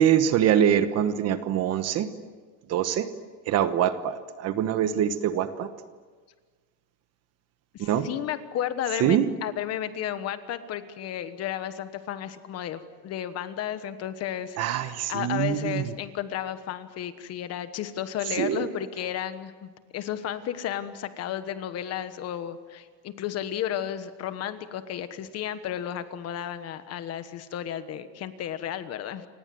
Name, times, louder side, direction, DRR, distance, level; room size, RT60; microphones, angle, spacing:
voice 1, 0.0-2.1 2.7-3.1 3.5-5.7 7.8-8.1 9.0-9.3 14.6-15.8 18.4-18.7, right 10 dB, 30° right, 11 dB, 1.2 m, -24 dB
voice 2, 7.7-29.3, left 10 dB, 30° left, 11 dB, 1.3 m, -33 dB
29.5 x 25.5 x 7.8 m, 1.4 s
cardioid pair, 175°, 48 cm